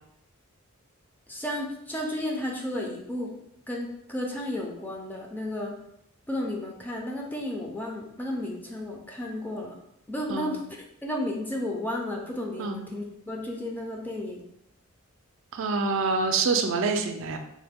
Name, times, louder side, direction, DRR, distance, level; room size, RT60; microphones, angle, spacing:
voice 1, 1.3-3.4 3.7-5.8 6.3-9.8 10.1-10.6 11.0-14.4, left 1 dB, 10° left, -1 dB, 0.4 m, -33 dB
voice 2, 15.5-17.4, right 4 dB, 65° right, 5 dB, 0.4 m, -26 dB
3.2 x 2.1 x 3.4 m, 0.80 s
head